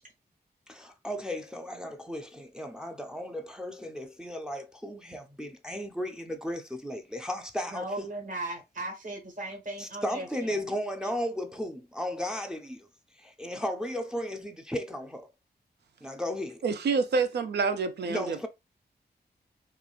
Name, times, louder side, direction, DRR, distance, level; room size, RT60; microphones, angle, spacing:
voice 1, 0.7-7.9 9.8-12.9 13.2-15.3 16.0-16.6 18.1-18.5, equal, 5° right, 0.4 m, -35 dB
voice 2, 7.7-10.7 11.0-11.1, right 2 dB, 50° right, 1.2 m, -37 dB
voice 3, 16.6-18.5, right 4 dB, 80° right, 0.5 m, -27 dB
3.0 x 2.4 x 2.3 m
cardioid pair, 70°, 17 cm